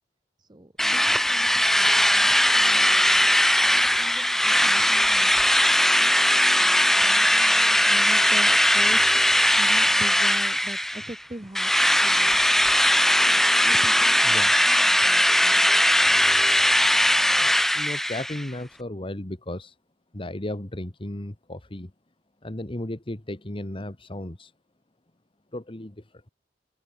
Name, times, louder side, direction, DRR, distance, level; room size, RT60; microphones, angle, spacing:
voice 1, 0.5-5.5 6.0-9.1 9.6-11.7 12.0-12.4 13.2-14.3 14.7-15.8, right 1 dB, 25° right, 1.1 m, -42 dB
Drill, 0.8-11.2 11.6-18.5, left 1 dB, ahead, 0.3 m, -20 dB
voice 2, 14.2-14.6 15.3-15.4 17.4-19.7 20.1-21.9 22.4-24.5 25.5-26.0, left 1 dB, 30° left, 1.5 m, -35 dB
open air
head